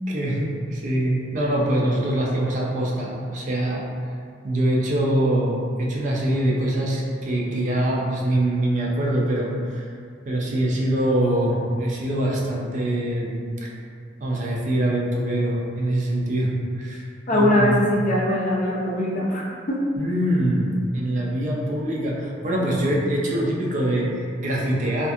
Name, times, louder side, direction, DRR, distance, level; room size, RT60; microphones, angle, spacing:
voice 1, 0.1-3.9 4.4-9.9 10.3-13.7 14.2-17.8 20.0-25.1, right 1 dB, 40° right, -3 dB, 0.4 m, -24 dB
voice 2, 17.3-19.8, left 1 dB, 40° left, -4 dB, 0.5 m, -21 dB
2.5 x 2.4 x 2.4 m, 2.2 s
head